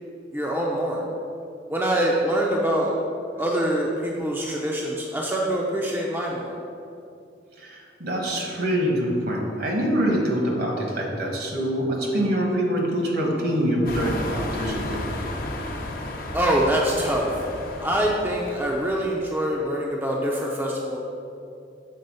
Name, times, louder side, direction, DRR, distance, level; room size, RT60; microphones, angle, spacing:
voice 1, 0.3-1.0 1.7-2.9 3.4-6.6 16.3-17.3 17.8-21.0, right 1 dB, 10° right, -3 dB, 0.5 m, -24 dB
voice 2, 7.6-15.0, equal, 60° right, 0 dB, 1.3 m, -25 dB
sound 1, 13.9-19.2, left 1 dB, 50° left, 0.7 m, -33 dB
6.8 x 4.0 x 5.4 m, 2.6 s
head